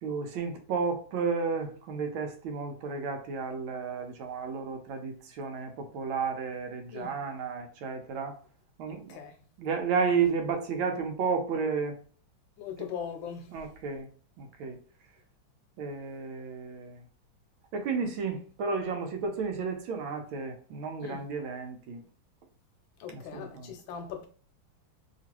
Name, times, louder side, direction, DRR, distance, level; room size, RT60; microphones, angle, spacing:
voice 1, 0.0-8.4 8.8-9.2 9.6-12.0 13.5-14.1 14.4-14.8 15.8-17.0 17.7-22.0 23.1-23.7, right 5 dB, 80° right, 1.4 m, -32 dB
voice 2, 8.9-9.4 12.6-13.6 21.0-21.3 23.0-24.3, left 7 dB, 75° left, 1.3 m, -40 dB
3.0 x 2.9 x 2.9 m
omnidirectional pair, 2.2 m